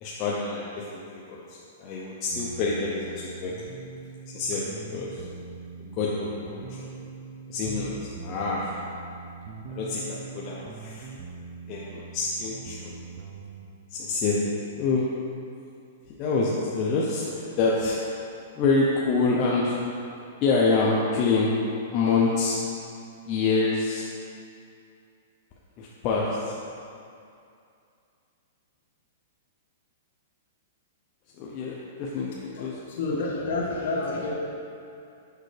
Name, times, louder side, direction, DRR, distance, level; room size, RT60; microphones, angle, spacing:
voice 1, 0.0-3.5 4.3-5.2 5.8-6.9 7.5-8.8 9.7-11.1 11.7-12.9 13.9-14.5 14.7-15.1 16.2-18.0 18.5-19.8 20.4-21.5 21.9-22.6 23.3-24.1 25.8-26.6 31.4-32.7 33.1-33.2, left 3 dB, 30° left, -5 dB, 0.6 m, -27 dB
sound 1, 2.3-13.7, right 5 dB, 40° right, 0.5 m, -42 dB
voice 2, 32.5-34.3, left 2 dB, 55° left, -4 dB, 1.5 m, -29 dB
6.6 x 5.2 x 3.3 m, 2.5 s
hypercardioid pair, 155°, 0 cm